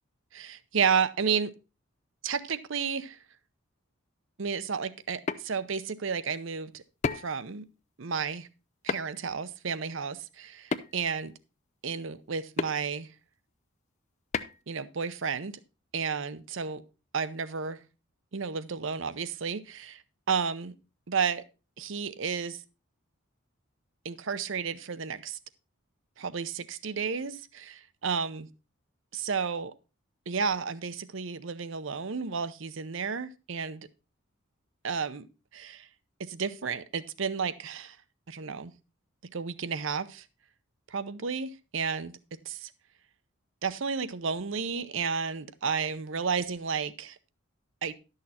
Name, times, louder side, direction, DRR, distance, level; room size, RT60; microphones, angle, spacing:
voice 1, 0.3-1.5 2.2-3.2 4.4-6.8 7.1-7.6 8.0-8.5 8.8-11.3 11.8-13.1 14.7-15.6 15.9-16.8 17.1-17.8 18.3-20.0 20.3-20.7 21.1-21.4 21.8-22.6 24.0-25.4 26.2-28.5 29.1-29.7 30.3-33.9 34.8-35.3 35.5-35.9 36.2-38.0 38.3-38.7 39.3-40.2 40.9-42.1 42.5-42.7 43.6-47.2 47.8-47.9, right 6 dB, 60° right, 0.7 m, -32 dB
sound 1, 5.0-5.4 7.0-7.4 8.9-9.2 10.7-11.1 12.6-12.7 14.3-14.6, left 4 dB, 35° left, 0.4 m, -31 dB
11.5 x 6.5 x 4.1 m
head